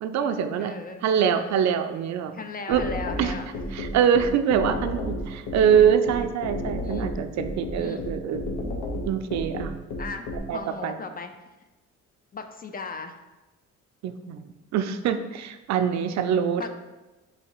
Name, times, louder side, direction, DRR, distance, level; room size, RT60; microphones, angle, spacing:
voice 1, 0.0-0.7 1.0-2.4 2.7-2.8 3.2-3.3 3.7-8.4 9.1-9.7 10.5-10.9 14.0-14.4 14.7-16.7, right 8 dB, 65° right, 8 dB, 0.4 m, -24 dB
voice 2, 0.6-1.5 2.3-3.6 5.5-5.7 6.8-7.1 7.8-8.1 9.0-9.1 10.0-11.3 12.3-13.2 16.6-16.7, left 4 dB, 30° left, 7 dB, 0.4 m, -37 dB
sound 1, 2.7-10.4, left 1 dB, 75° left, 0.9 m, -31 dB
3.9 x 2.8 x 4.5 m, 1.1 s
cardioid pair, 90°, 30 cm